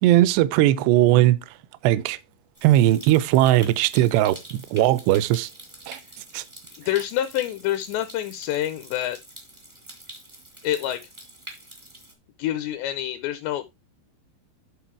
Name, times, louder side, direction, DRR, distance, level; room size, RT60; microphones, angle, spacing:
voice 1, 0.0-1.4 1.8-2.2 2.6-5.5 5.9-6.0 6.3-6.4, right 14 dB, 85° right, 2.5 m, -19 dB
Stream, 2.5-12.1, right 1 dB, 45° right, 0.3 m, -45 dB
voice 2, 6.7-9.2 10.6-11.0 12.4-13.7, left 12 dB, 80° left, 2.7 m, -27 dB
11.5 x 4.0 x 4.5 m
omnidirectional pair, 5.4 m